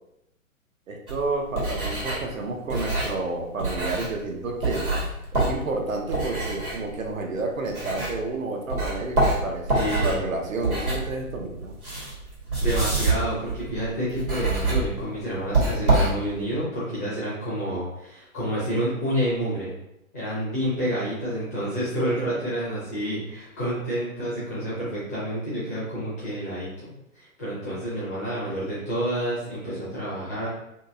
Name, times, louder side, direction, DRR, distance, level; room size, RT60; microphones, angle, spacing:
voice 1, 0.9-4.9 5.3-11.7, right 3 dB, 65° right, 1 dB, 0.7 m, -30 dB
sound 1, 1.1-8.4 8.7-16.5, right 2 dB, 90° right, 1.4 m, -27 dB
voice 2, 9.7-10.3 12.6-19.7 20.1-26.9 27.1-30.5, equal, 10° left, -9 dB, 0.4 m, -29 dB
2.8 x 2.7 x 2.5 m, 0.84 s
figure-of-eight pair, 115°, 42 cm